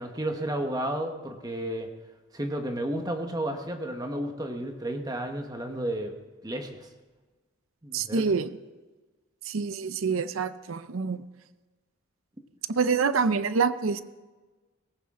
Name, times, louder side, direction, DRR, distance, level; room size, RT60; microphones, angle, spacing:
voice 1, 0.0-1.9 2.3-6.1 6.4-6.9 7.8-8.3, right 1 dB, 20° right, 4 dB, 1.2 m, -32 dB
voice 2, 7.9-8.5 9.5-11.2 12.7-14.0, right 5 dB, 75° right, 13 dB, 0.6 m, -26 dB
19.0 x 16.0 x 3.8 m, 1.3 s
head